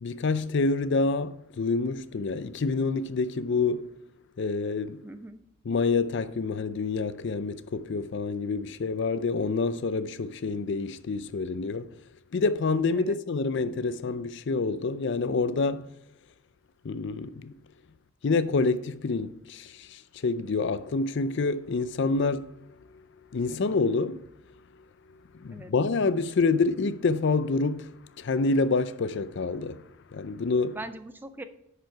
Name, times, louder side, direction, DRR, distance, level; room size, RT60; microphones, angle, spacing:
voice 1, 0.0-4.0 4.4-5.0 5.7-12.0 12.3-15.9 16.8-17.5 18.2-23.0 23.3-24.3 25.3-30.8, left 3 dB, 55° left, 0.4 m, -27 dB
voice 2, 5.0-5.5 13.0-13.2 25.5-25.7 30.7-31.4, right 2 dB, 10° right, 0.4 m, -41 dB
10.5 x 4.9 x 4.5 m
head